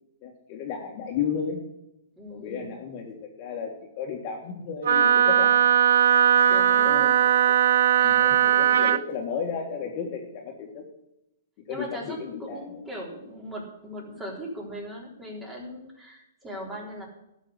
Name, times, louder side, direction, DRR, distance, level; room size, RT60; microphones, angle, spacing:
voice 1, 0.2-1.6 2.3-5.5 6.8-7.0 8.0-10.8 11.7-12.6, left 6 dB, 40° left, 0 dB, 1.9 m, -33 dB
voice 2, 2.2-2.8 6.5-7.6 8.0-8.2 8.8-8.9 11.7-17.1, equal, 10° right, -2 dB, 3.7 m, -39 dB
Wind instrument woodwind instrument, 4.8-9.0, right 10 dB, 70° right, 0.4 m, -19 dB
12.0 x 6.0 x 8.1 m, 0.86 s
hypercardioid pair, 145°, 0 cm